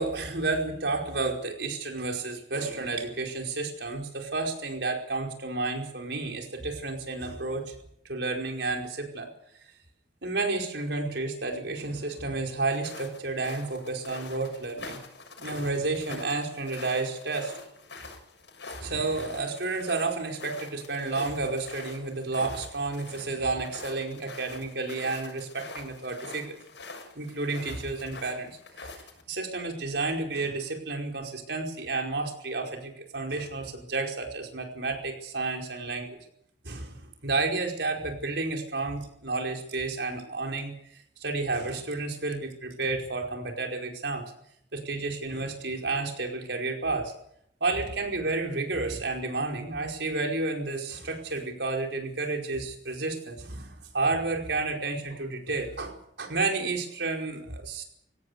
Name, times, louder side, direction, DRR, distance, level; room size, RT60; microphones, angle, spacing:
voice 1, 0.0-7.7 8.1-9.3 10.2-15.0 15.4-17.5 18.8-26.6 27.1-29.0 29.3-36.2 36.6-40.7 41.2-44.2 44.7-47.1 47.6-57.8, right 3 dB, 70° right, 2 dB, 5.0 m, -31 dB
sound 1, 12.7-29.2, left 3 dB, 75° left, 6.9 m, -45 dB
23.0 x 17.5 x 8.3 m, 0.71 s
head